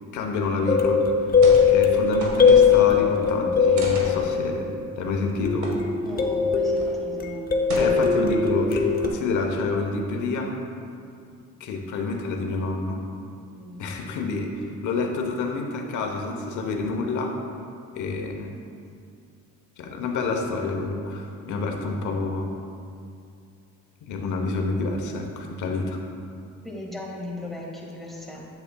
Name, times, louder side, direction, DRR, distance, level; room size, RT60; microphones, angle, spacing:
voice 1, 0.1-1.0 1.7-4.7 5.0-5.8 6.2-6.5 7.7-10.6 11.6-13.0 13.8-17.3 17.9-18.5 19.8-22.5 24.0-26.0, left 3 dB, 75° left, 2 dB, 0.8 m, -28 dB
sound 1, 0.7-4.9 5.5-9.1, left 6 dB, 30° left, 0.6 m, -20 dB
sound 2, 1.4-1.7 2.0-3.1 3.8-4.2 5.6-5.7 6.1-6.2 6.7-7.0 7.7-8.3 8.8-9.3, right 1 dB, 70° right, 1.5 m, -34 dB
voice 2, 5.9-7.5 13.5-13.9 26.6-28.5, left 2 dB, ahead, -4 dB, 1.6 m, -38 dB
8.2 x 7.9 x 2.2 m, 2.4 s
cardioid pair, 90°, 30 cm